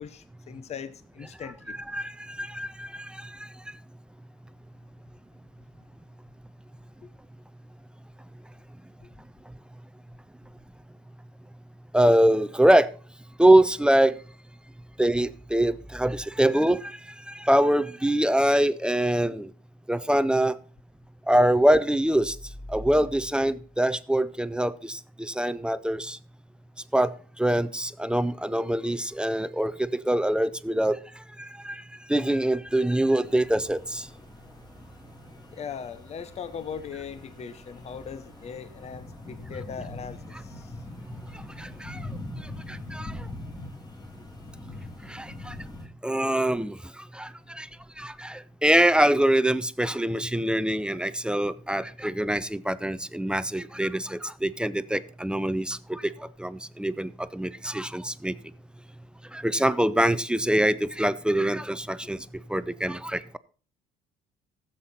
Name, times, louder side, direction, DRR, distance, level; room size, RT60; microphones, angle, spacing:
voice 1, 0.0-1.8 9.0-9.1 35.5-40.7 62.0-62.1, left 7 dB, 40° left, 14 dB, 0.8 m, -39 dB
voice 2, 1.7-3.5 11.9-12.9 13.4-14.2 15.0-19.5 19.9-20.6 21.3-22.4 22.7-26.2 26.9-27.1 27.4-31.8 32.1-34.1 41.3-42.1 42.4-43.3 45.1-45.6 46.0-47.7 48.0-58.3 59.3-62.2 62.5-63.4, right 1 dB, 5° right, 15 dB, 0.4 m, -24 dB
sound 1, 33.2-45.9, left 1 dB, 25° left, 2.8 m, -42 dB
14.0 x 7.5 x 4.2 m, 0.40 s
cardioid pair, 110°, 17 cm